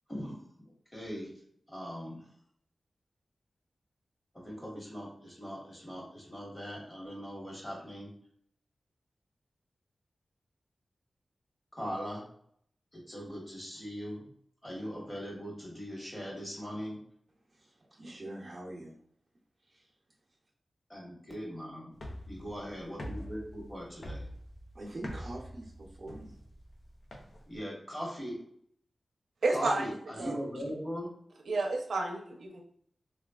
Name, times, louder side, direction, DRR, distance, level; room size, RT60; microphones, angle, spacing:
voice 1, 0.9-1.3 1.7-2.3 4.3-8.1 11.8-12.2 12.9-14.3 14.6-17.0 20.9-21.9 22.3-24.3 27.5-28.4 29.5-31.1, equal, 20° left, -3 dB, 1.2 m, -40 dB
voice 2, 17.5-19.0 19.7-19.9 24.7-26.4, right 1 dB, 45° right, -5 dB, 0.7 m, -44 dB
sound 1, 21.9-27.6, equal, 60° left, 0.5 m, -45 dB
voice 3, 29.4-29.9 30.2-30.4 31.5-32.6, right 2 dB, 90° right, 2 dB, 0.6 m, -30 dB
3.2 x 2.3 x 2.3 m, 0.65 s
wide cardioid pair, 90°, 0 cm